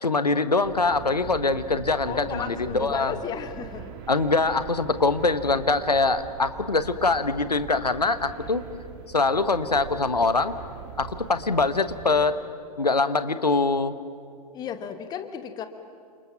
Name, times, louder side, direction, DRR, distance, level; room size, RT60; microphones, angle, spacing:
voice 1, 0.0-3.1 4.1-8.6 9.1-10.5 11.0-12.3 12.8-13.9, left 3 dB, 80° left, 12 dB, 1.3 m, -23 dB
sound 1, 0.6-12.3, right 8 dB, 40° right, 2.0 m, -42 dB
voice 2, 2.1-3.9 14.5-15.7, left 8 dB, 20° left, 9 dB, 1.4 m, -34 dB
29.0 x 27.5 x 6.0 m, 2.3 s
figure-of-eight pair, 110°, 20 cm